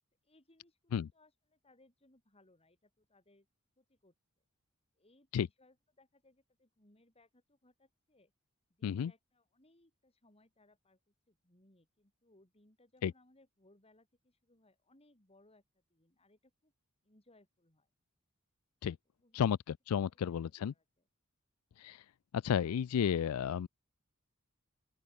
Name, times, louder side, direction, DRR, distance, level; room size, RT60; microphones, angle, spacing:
voice 1, 0.2-3.5 3.8-4.1 5.0-8.3 8.7-11.0 11.3-16.7 17.0-17.9 19.2-19.4 20.1-20.3 20.7-20.8, left 2 dB, 30° left, 6.0 m, -68 dB
voice 2, 19.3-20.7 21.8-22.0 22.3-23.7, left 8 dB, 90° left, 0.3 m, -32 dB
open air
head